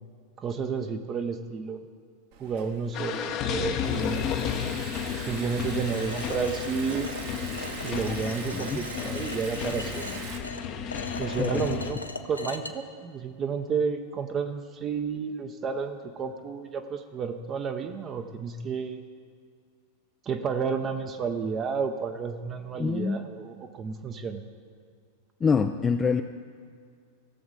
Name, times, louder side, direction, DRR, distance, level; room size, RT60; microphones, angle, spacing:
voice 1, 0.4-1.8 2.4-4.2 5.2-7.2 7.8-10.1 11.2-12.0 12.2-19.0 20.2-24.4, right 5 dB, 25° right, 6 dB, 0.7 m, -31 dB
Liquid, 2.3-10.4, right 6 dB, 50° right, 1.1 m, -42 dB
sound 1, 2.9-11.9, left 7 dB, 35° left, 0.8 m, -33 dB
sound 2, 5.9-12.7, left 3 dB, 80° left, 0.6 m, -39 dB
voice 2, 22.8-23.2 25.4-26.2, left 5 dB, 20° left, 7 dB, 0.4 m, -25 dB
17.0 x 7.1 x 4.0 m, 2.1 s
figure-of-eight pair, 90°, 0 cm